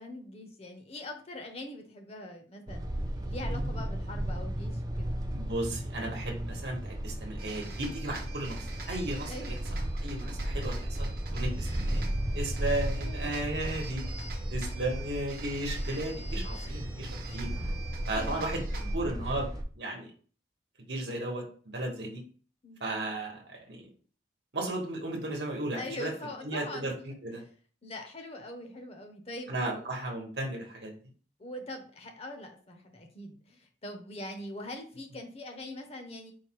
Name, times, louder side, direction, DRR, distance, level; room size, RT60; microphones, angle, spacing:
voice 1, 0.0-5.1 9.2-9.5 10.2-10.3 11.6-11.8 12.9-13.3 16.5-17.0 18.1-19.0 22.6-22.8 25.7-27.1 27.8-29.9 31.4-36.3, left 1 dB, 35° left, 4 dB, 0.6 m, -43 dB
sound 1, 2.7-19.6, right 1 dB, 20° right, 0.4 m, -34 dB
voice 2, 5.3-9.6 10.0-12.0 12.3-14.1 14.5-17.5 18.1-18.6 18.9-20.1 20.8-22.2 22.8-23.9 24.5-26.1 26.4-27.4 29.5-30.9, right 1 dB, 65° right, 0 dB, 1.1 m, -35 dB
sound 2, 7.4-19.0, right 4 dB, 50° right, 0.8 m, -47 dB
4.6 x 2.1 x 4.5 m, 0.42 s
head